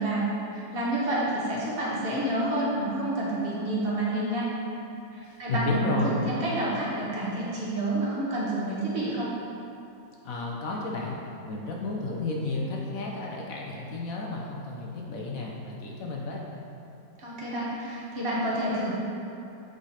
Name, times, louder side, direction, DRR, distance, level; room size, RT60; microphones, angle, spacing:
voice 1, 0.0-4.5 5.1-9.3 17.2-18.9, right 1 dB, 30° right, -7 dB, 1.4 m, -29 dB
voice 2, 5.2-6.2 10.2-11.2 11.4-16.4, left 3 dB, 65° left, -1 dB, 0.9 m, -32 dB
8.2 x 3.9 x 4.1 m, 2.9 s
omnidirectional pair, 2.1 m